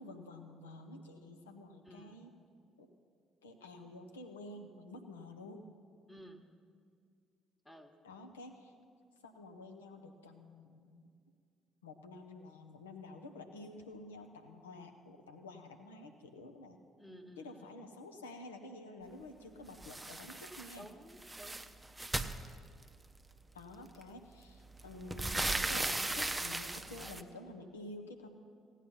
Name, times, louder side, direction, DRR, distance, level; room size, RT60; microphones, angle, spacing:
voice 1, 0.0-2.3 2.8-2.9 3.4-5.7 8.0-8.7 9.2-11.1 11.8-16.8 17.4-20.9 23.5-28.3, left 2 dB, 75° left, 5 dB, 0.9 m, -50 dB
voice 2, 1.8-2.2 6.1-6.5 7.6-7.9 17.0-17.7 20.8-21.7 22.0-22.4, right 1 dB, 10° left, 6 dB, 1.3 m, -54 dB
sound 1, 19.8-20.8 21.1-23.1 24.0-24.1 24.5-27.2, right 2 dB, 15° right, 0.7 m, -37 dB
16.5 x 9.2 x 5.6 m, 2.2 s
figure-of-eight pair, 45°, 0 cm